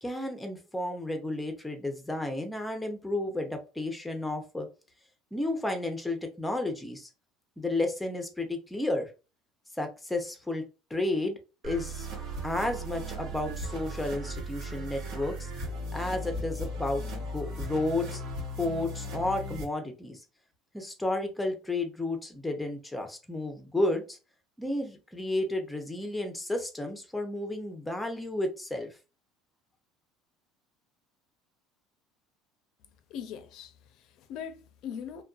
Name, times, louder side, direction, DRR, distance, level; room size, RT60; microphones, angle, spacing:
voice 1, 0.0-4.7 5.3-7.1 7.6-9.1 9.8-10.6 10.9-11.4 11.6-12.1 12.4-15.5 15.9-18.2 18.6-20.2 20.7-24.2 24.6-28.9, left 2 dB, 5° left, 0.6 m, -32 dB
sound 1, 11.6-19.6, equal, 70° right, 1.1 m, -37 dB
voice 2, 33.1-35.2, left 8 dB, 65° left, 0.5 m, -41 dB
2.5 x 2.2 x 2.4 m
supercardioid pair, 110°, 0 cm